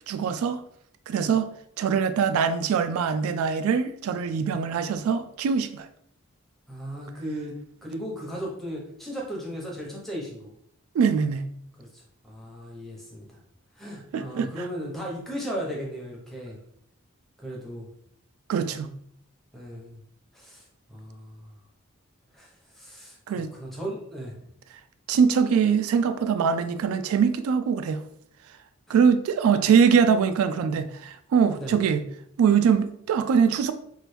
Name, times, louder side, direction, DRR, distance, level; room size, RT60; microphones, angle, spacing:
voice 1, 0.1-0.6 1.1-1.5 1.8-5.9 10.9-11.4 14.1-14.5 18.5-18.9 23.3-23.5 25.1-28.0 28.9-32.0 32.4-33.7, right 6 dB, 90° right, 0.3 m, -22 dB
voice 2, 6.7-7.5 7.8-10.5 11.8-13.4 13.8-16.6 17.4-17.9 19.5-20.0 20.3-20.6 20.9-21.5 22.3-24.3 28.9-29.0 31.6-31.7, equal, ahead, 0.7 m, -36 dB
3.1 x 2.5 x 3.2 m
head